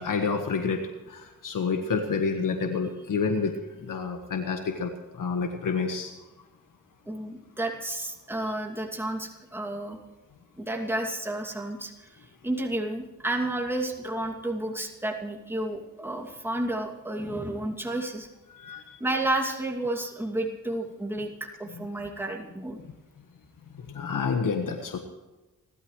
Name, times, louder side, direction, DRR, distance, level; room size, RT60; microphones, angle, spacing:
voice 1, 0.0-6.1 18.5-19.0 23.8-25.0, left 5 dB, 70° left, 5 dB, 1.5 m, -29 dB
voice 2, 7.1-10.0 10.6-12.1 12.4-18.3 19.0-22.8, right 1 dB, 5° right, 0 dB, 2.6 m, -31 dB
29.0 x 12.5 x 3.3 m, 1.1 s
cardioid pair, 60°, 33 cm